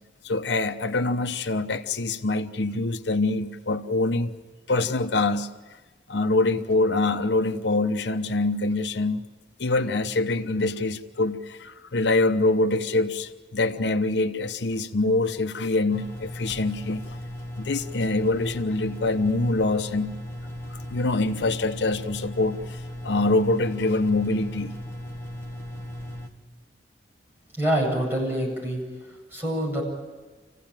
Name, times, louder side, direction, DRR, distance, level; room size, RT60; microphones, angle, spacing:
voice 1, 0.2-4.3 4.7-5.5 6.1-9.2 9.6-17.0 17.6-20.2 20.7-24.7, left 2 dB, 85° left, 9 dB, 0.9 m, -25 dB
sound 1, 15.9-26.3, left 1 dB, 15° left, 1.8 m, -37 dB
voice 2, 27.6-29.8, right 1 dB, 15° right, -3 dB, 7.9 m, -26 dB
27.0 x 16.0 x 9.0 m, 1.3 s
head